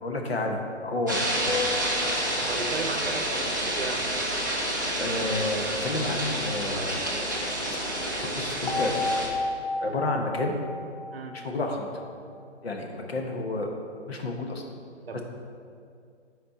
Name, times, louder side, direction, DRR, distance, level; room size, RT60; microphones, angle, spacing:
voice 1, 0.0-1.4 5.0-7.0 7.7-7.8 8.4-8.9 9.8-10.5 11.3-11.9 12.6-13.7 14.1-14.6 15.1-15.2, left 2 dB, 60° left, 2 dB, 1.1 m, -30 dB
sound 1, 1.1-9.3, right 1 dB, 20° right, 0.5 m, -29 dB
sound 2, 1.5-3.0 8.7-12.0, left 3 dB, 40° left, 0.6 m, -32 dB
voice 2, 2.4-4.1 11.1-11.4 15.1-15.2, right 3 dB, 55° right, 5 dB, 0.7 m, -35 dB
6.9 x 4.3 x 5.4 m, 2.3 s
hypercardioid pair, 165°, 35 cm